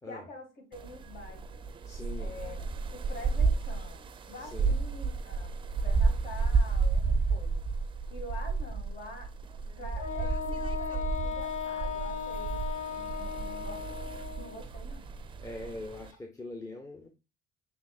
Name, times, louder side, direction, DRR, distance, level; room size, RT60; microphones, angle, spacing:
voice 1, 0.0-1.7 2.2-5.5 5.8-7.6 8.1-9.3 9.8-15.1, left 2 dB, 65° left, 3 dB, 1.9 m, -47 dB
sound 1, 0.7-16.1, right 4 dB, 30° right, 0.4 m, -32 dB
voice 2, 1.8-2.3 4.4-4.7 15.4-17.1, left 2 dB, 20° left, 3 dB, 0.7 m, -42 dB
Wind instrument woodwind instrument, 10.0-14.6, left 7 dB, 45° left, 1.5 m, -37 dB
5.9 x 3.4 x 2.3 m, 0.27 s
cardioid pair, 110°, 17 cm